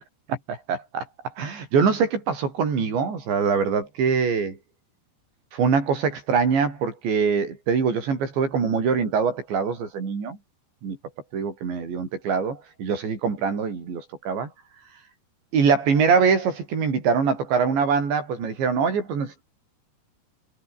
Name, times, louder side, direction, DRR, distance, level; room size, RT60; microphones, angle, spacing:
voice 1, 0.7-1.1 1.4-4.6 5.5-10.4 10.8-11.0 11.3-14.5 15.5-19.4, right 5 dB, 75° right, 8.2 m, -23 dB
omnidirectional pair, 5.2 m